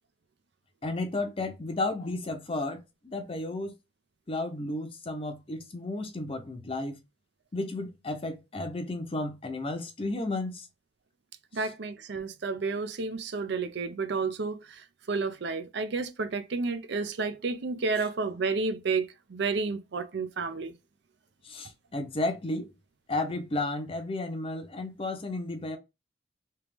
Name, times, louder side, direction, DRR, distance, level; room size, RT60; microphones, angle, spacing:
voice 1, 0.8-3.7 4.3-7.0 7.5-10.7 21.4-22.7 23.1-25.8, left 2 dB, 30° left, 0.6 m, -33 dB
voice 2, 11.5-20.7, right 4 dB, 65° right, 0.5 m, -31 dB
3.3 x 3.0 x 3.4 m
head